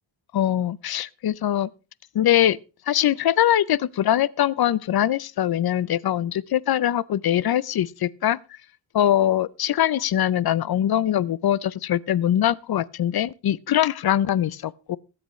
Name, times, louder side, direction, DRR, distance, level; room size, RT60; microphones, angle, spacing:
voice 1, 0.3-1.7 2.1-2.6 2.9-8.4 8.9-15.0, left 11 dB, 50° left, 0.5 m, -22 dB
22.0 x 7.9 x 3.1 m
wide cardioid pair, 125°, 48 cm